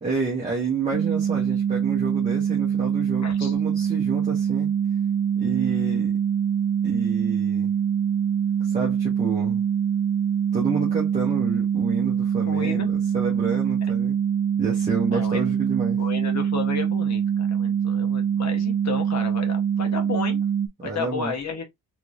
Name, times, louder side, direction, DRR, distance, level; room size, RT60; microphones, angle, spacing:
voice 1, 0.0-4.7 5.4-6.1 6.8-7.7 8.6-9.7 10.5-14.2 14.6-16.0 20.8-21.3, right 4 dB, 20° right, 1.1 m, -29 dB
sound 1, 0.9-20.7, right 8 dB, 45° right, 0.5 m, -24 dB
voice 2, 3.2-3.5 12.5-12.9 15.1-15.4 16.0-20.4 20.8-21.6, left 5 dB, 50° left, 1.0 m, -32 dB
3.6 x 3.0 x 2.5 m
wide cardioid pair, 175°, 35 cm